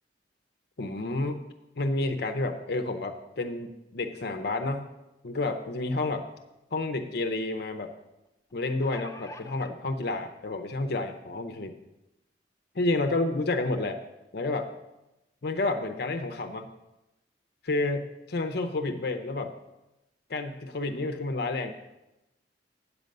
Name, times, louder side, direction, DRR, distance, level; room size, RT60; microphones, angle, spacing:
voice 1, 0.8-1.4 1.8-4.9 5.2-6.3 6.7-7.9 8.5-11.8 12.7-14.0 14.3-14.7 15.4-16.7 17.6-19.5 20.3-21.7, left 2 dB, 60° left, 7 dB, 0.6 m, -30 dB
sound 1, 6.4-6.5 6.8-6.9 8.5-9.7 10.6-10.7 11.1-11.2, left 1 dB, 15° left, 0.4 m, -45 dB
8.3 x 7.9 x 5.3 m, 0.95 s
head